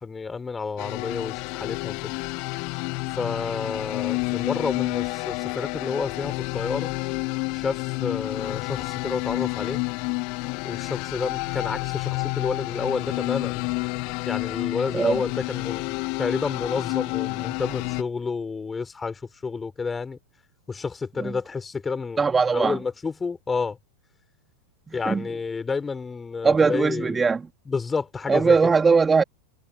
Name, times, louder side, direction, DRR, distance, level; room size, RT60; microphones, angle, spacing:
voice 1, 0.0-2.1 3.2-6.9 7.5-9.8 10.6-13.7 14.3-20.2 20.7-22.2 22.5-23.8 24.9-27.2 27.7-28.6, left 4 dB, 15° left, 4.6 m, -30 dB
sound 1, 0.8-18.0, left 32 dB, 45° left, 3.3 m, -29 dB
voice 2, 22.2-22.8 24.9-25.3 26.4-27.5 28.3-29.2, right 5 dB, 15° right, 3.6 m, -20 dB
figure-of-eight pair, 90°, 0 cm